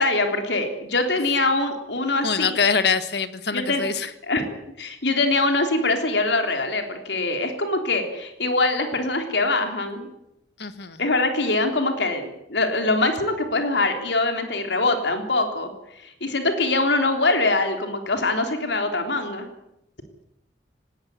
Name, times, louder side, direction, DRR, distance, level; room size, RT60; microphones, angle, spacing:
voice 1, 0.0-2.6 3.5-3.8 4.3-4.5 4.8-10.1 11.0-15.7 16.0-19.5, left 2 dB, 85° left, 5 dB, 3.5 m, -23 dB
voice 2, 2.2-4.1 10.6-11.0, left 5 dB, 70° left, 12 dB, 1.6 m, -24 dB
19.0 x 18.0 x 9.5 m, 0.84 s
head